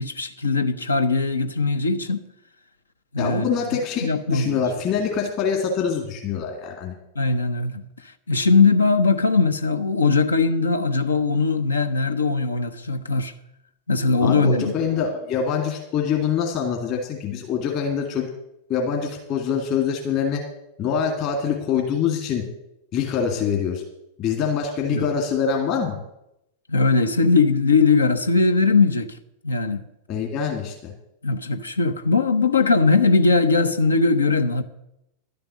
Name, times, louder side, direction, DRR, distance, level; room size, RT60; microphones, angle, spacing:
voice 1, 0.0-2.3 3.1-3.6 4.0-4.6 7.2-13.3 13.9-14.7 24.9-25.0 26.7-29.2 29.4-29.8 31.2-34.6, left 4 dB, 75° left, 0.7 m, -20 dB
voice 2, 3.2-6.9 14.2-18.3 18.7-20.4 20.8-22.4 22.9-23.8 24.2-26.0 30.1-30.9, left 7 dB, 40° left, 2.1 m, -24 dB
11.5 x 6.9 x 8.2 m
figure-of-eight pair, 90°, 0 cm